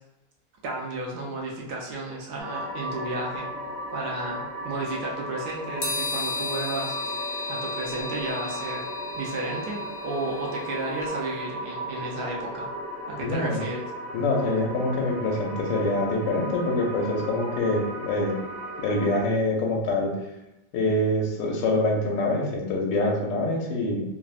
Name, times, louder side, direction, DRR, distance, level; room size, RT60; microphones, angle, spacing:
voice 1, 0.6-3.5 3.9-7.1 7.5-8.9 9.2-12.7 13.1-13.8, right 2 dB, 70° right, -2 dB, 1.1 m, -33 dB
sound 1, 2.4-19.2, equal, 55° right, 0.7 m, -36 dB
sound 2, 5.8-11.1, left 3 dB, 60° left, 0.6 m, -34 dB
voice 2, 13.2-13.6 14.1-18.3 18.8-20.1 20.7-24.0, left 2 dB, 85° left, -1 dB, 1.3 m, -25 dB
3.3 x 2.0 x 2.4 m, 0.90 s
omnidirectional pair, 1.9 m